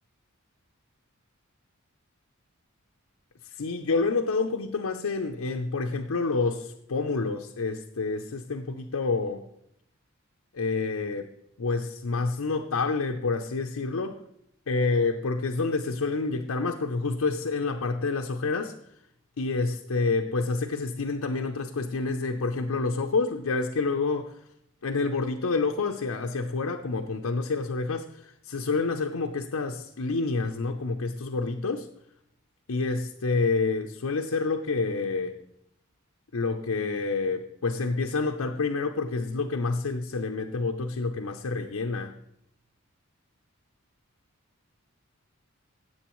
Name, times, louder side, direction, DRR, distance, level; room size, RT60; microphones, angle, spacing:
voice 1, 3.5-9.5 10.5-11.3 11.6-14.2 14.7-18.7 19.4-24.3 24.8-31.9 32.7-35.4 36.3-42.2, left 3 dB, 85° left, 0.6 m, -28 dB
17.0 x 7.8 x 3.1 m
head